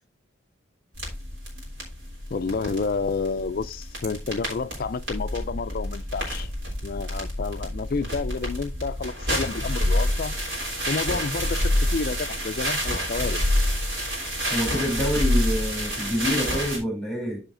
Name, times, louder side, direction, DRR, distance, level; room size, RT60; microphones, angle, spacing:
sound 1, 0.9-16.8, equal, 70° right, 3.5 m, -28 dB
voice 1, 2.3-6.5 6.8-10.3 10.9-13.6, left 4 dB, 45° left, 0.4 m, -30 dB
voice 2, 14.5-17.4, equal, 5° left, 2.9 m, -27 dB
13.5 x 4.9 x 2.6 m
head